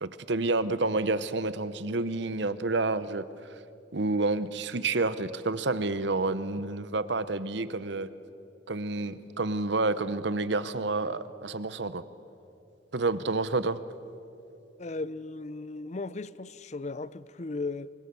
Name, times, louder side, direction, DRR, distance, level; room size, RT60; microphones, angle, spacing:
voice 1, 0.0-3.2 3.9-8.1 8.7-12.0 12.9-13.8, right 3 dB, 60° right, 14 dB, 0.9 m, -29 dB
voice 2, 14.8-17.9, left 3 dB, 35° left, 17 dB, 0.5 m, -36 dB
28.5 x 24.0 x 6.9 m, 2.7 s
head